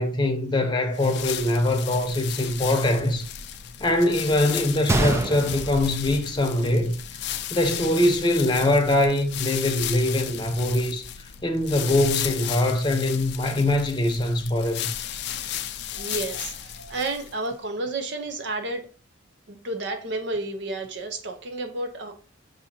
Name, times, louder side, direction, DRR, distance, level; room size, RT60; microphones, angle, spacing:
voice 1, 0.0-3.3 3.8-6.9 7.5-11.1 11.4-14.9, left 1 dB, 25° left, 0.7 m, -23 dB
sound 1, 0.9-17.5, left 10 dB, 60° left, 0.4 m, -34 dB
Gunshot gunfire, 4.9-6.9 7.2-7.3 8.0-8.2, right 1 dB, 15° right, 0.3 m, -27 dB
voice 2, 15.9-18.9 19.5-22.1, right 2 dB, 65° right, 0.6 m, -31 dB
6.1 x 2.7 x 2.8 m
head